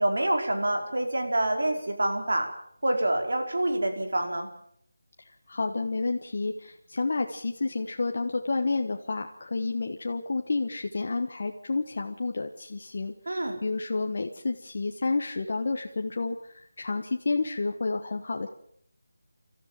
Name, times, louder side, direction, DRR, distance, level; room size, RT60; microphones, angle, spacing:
voice 1, 0.0-2.5 2.8-4.5 13.3-13.6, right 1 dB, 80° right, 3 dB, 4.7 m, -26 dB
voice 2, 5.2-18.5, left 3 dB, 50° left, 3 dB, 1.3 m, -30 dB
27.5 x 13.5 x 7.4 m, 0.67 s
figure-of-eight pair, 170°, 0 cm